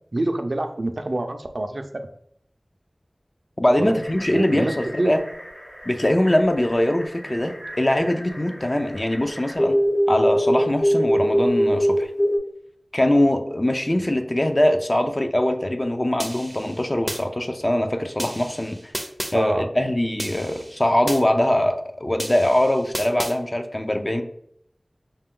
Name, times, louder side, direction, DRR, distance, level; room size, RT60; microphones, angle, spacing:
voice 1, 0.1-2.1 3.8-4.0 4.3-5.1 19.3-19.7, right 2 dB, 65° right, 6 dB, 0.4 m, -26 dB
voice 2, 3.6-5.2 5.9-9.8 10.1-12.1 12.9-18.9 19.3-24.2, left 1 dB, 40° left, 5 dB, 0.5 m, -22 dB
sound 1, 4.0-12.4, equal, 80° left, 1.5 m, -25 dB
sound 2, 16.2-17.2 18.2-19.3 20.2-21.2 22.2-23.3, equal, 10° right, 0.5 m, -33 dB
5.4 x 2.2 x 3.7 m, 0.70 s
wide cardioid pair, 45°, 0 cm